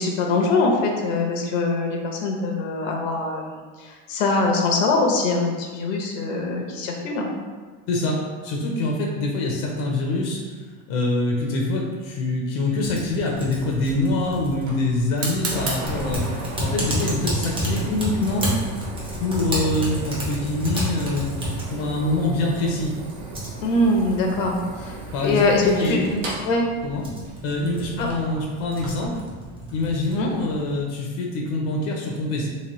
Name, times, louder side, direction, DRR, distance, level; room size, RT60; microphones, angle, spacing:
voice 1, 0.0-7.3 23.6-25.0 25.2-26.1 26.4-26.6 28.0-28.1 30.1-30.3, left 2 dB, 80° left, 1 dB, 0.8 m, -23 dB
voice 2, 7.9-10.4 10.9-16.3 16.6-18.5 19.2-21.3 21.7-22.9 25.1-26.2 26.8-27.1 27.4-29.1 29.7-32.5, left 2 dB, 50° left, -1 dB, 0.6 m, -25 dB
Typing, 12.8-30.8, equal, 15° right, 0.6 m, -32 dB
Fire, 13.5-29.1, right 2 dB, 70° right, 1.1 m, -36 dB
3.0 x 2.9 x 3.0 m, 1.4 s
supercardioid pair, 150°, 37 cm